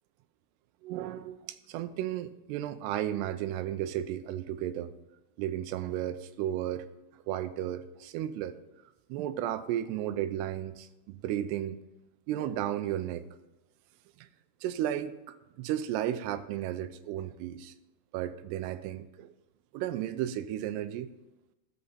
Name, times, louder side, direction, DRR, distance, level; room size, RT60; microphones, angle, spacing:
voice 1, 0.8-1.4 1.7-4.9 5.4-6.9 7.3-8.6 9.1-11.8 12.3-13.2 14.2-14.3 14.6-17.7 18.1-19.3 19.7-21.1, right 11 dB, 90° right, 12 dB, 2.7 m, -34 dB
14.0 x 6.6 x 4.2 m, 0.97 s
omnidirectional pair, 4.7 m